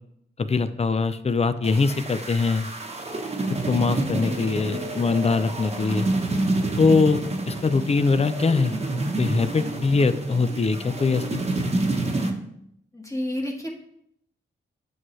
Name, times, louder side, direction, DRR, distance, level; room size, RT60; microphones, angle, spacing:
voice 1, 0.4-2.7 3.7-6.1 6.8-8.7 9.2-11.4, left 4 dB, 30° left, 12 dB, 0.5 m, -22 dB
sound 1, 1.6-12.3, right 2 dB, 30° right, 1.0 m, -28 dB
voice 2, 12.9-13.7, left 1 dB, 15° left, 0 dB, 1.5 m, -29 dB
8.6 x 6.3 x 3.2 m, 0.73 s
cardioid pair, 80°, 20 cm